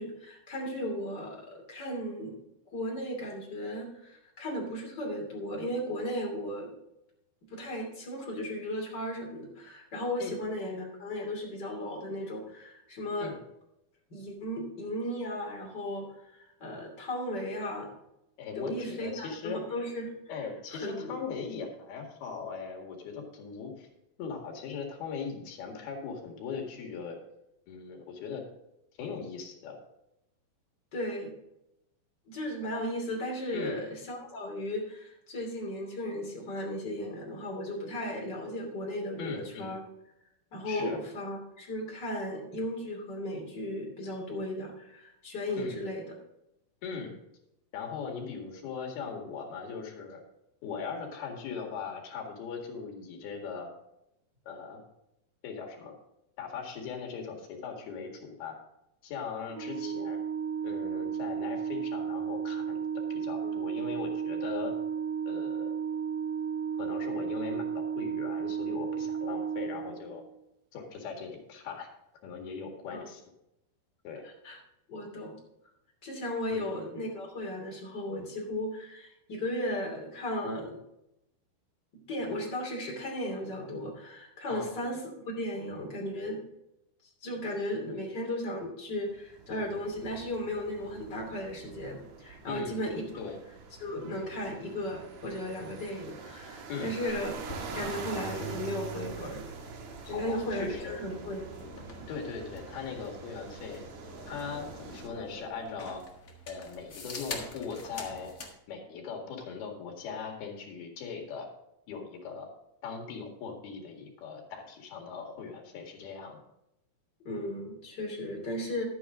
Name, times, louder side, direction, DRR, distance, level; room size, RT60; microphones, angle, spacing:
voice 1, 0.0-2.3 2.7-6.7 7.5-13.3 14.1-17.9 18.5-20.1 20.7-21.2 30.9-31.3 32.3-39.8 40.5-46.1 59.8-60.0 63.4-63.5 72.9-73.1 74.4-74.6 74.9-75.4 76.0-80.7 82.1-85.0 85.2-86.4 87.2-93.1 93.8-97.3 97.6-99.4 100.1-101.5 102.0-102.1 117.2-118.8, left 1 dB, 30° left, -1 dB, 3.0 m, -35 dB
voice 2, 18.4-19.6 20.3-23.9 24.2-27.2 27.7-28.4 29.0-29.8 33.5-33.8 39.2-39.8 40.7-41.0 45.6-45.8 46.8-47.1 47.7-50.2 50.6-53.7 54.5-54.8 55.4-55.9 56.4-58.6 59.0-60.2 60.6-62.8 63.2-64.7 65.3-65.7 66.8-70.2 70.7-71.9 72.2-73.2 74.0-74.2 76.5-76.7 84.5-84.8 92.5-92.8 93.2-93.4 96.7-97.0 100.1-101.0 102.1-103.8 104.3-106.0 106.5-108.3 108.7-111.5 111.9-112.5 112.8-116.4, left 5 dB, 85° left, 2 dB, 3.9 m, -39 dB
Organ, 59.5-70.4, right 7 dB, 85° right, 1.7 m, -33 dB
sound 1, 89.1-105.1, right 5 dB, 60° right, 2.2 m, -45 dB
sound 2, 97.1-108.5, left 2 dB, 60° left, 0.8 m, -46 dB
12.0 x 9.1 x 3.7 m, 0.85 s
omnidirectional pair, 4.3 m